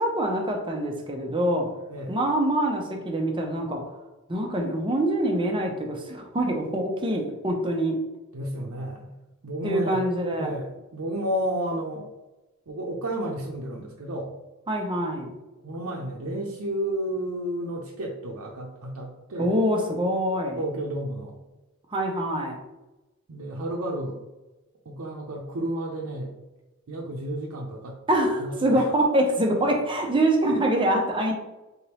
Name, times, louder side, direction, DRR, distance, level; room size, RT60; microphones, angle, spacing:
voice 1, 0.0-1.7 2.1-3.8 4.3-8.0 9.6-10.5 14.7-15.3 19.4-20.6 21.9-22.6 28.1-31.3, right 1 dB, 25° right, 1 dB, 0.7 m, -25 dB
voice 2, 8.3-9.2 9.4-10.0 10.3-12.1 12.7-14.3 15.6-19.5 20.6-21.4 23.3-24.2 24.9-26.3 26.9-28.9 29.6-29.8, right 1 dB, 85° right, -3 dB, 0.6 m, -32 dB
3.9 x 3.5 x 2.9 m, 1.0 s
head